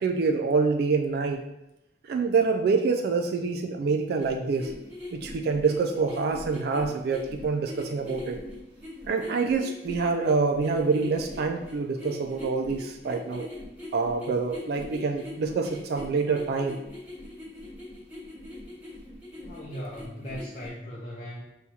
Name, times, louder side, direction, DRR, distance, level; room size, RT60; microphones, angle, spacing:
voice 1, 0.0-1.4 2.0-4.7 5.1-8.4 9.1-13.5 13.9-16.8, right 4 dB, 60° right, 5 dB, 0.3 m, -26 dB
sound 1, 4.2-20.7, left 1 dB, 10° right, 1.1 m, -42 dB
voice 2, 19.4-21.4, equal, 40° left, -5 dB, 0.6 m, -38 dB
5.7 x 2.3 x 2.7 m, 0.89 s
head